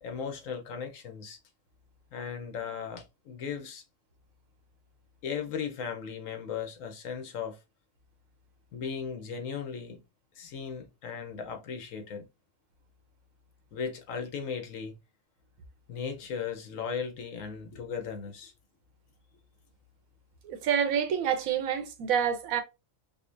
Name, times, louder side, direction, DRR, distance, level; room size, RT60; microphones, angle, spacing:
voice 1, 0.0-1.4 2.1-3.8 5.2-7.6 8.7-10.0 10.4-12.3 13.7-14.9 15.9-18.5, left 6 dB, 75° left, 1.2 m, -37 dB
voice 2, 20.4-22.6, right 8 dB, 85° right, 1.1 m, -27 dB
5.2 x 2.1 x 2.5 m
omnidirectional pair, 1.4 m